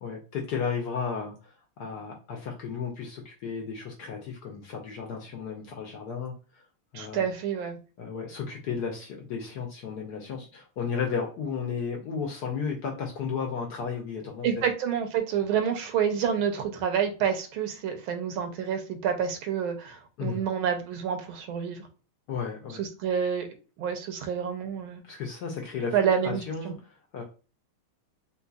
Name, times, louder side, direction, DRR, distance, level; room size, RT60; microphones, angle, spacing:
voice 1, 0.0-6.6 6.9-7.3 8.0-14.5 20.2-20.4 22.3-22.8 25.0-27.2, left 6 dB, 65° left, 1 dB, 1.1 m, -34 dB
voice 2, 6.9-7.8 14.4-21.8 22.8-23.5 23.8-25.0 25.9-26.8, right 8 dB, 80° right, 6 dB, 1.5 m, -28 dB
3.8 x 2.8 x 2.3 m, 0.34 s
omnidirectional pair, 2.3 m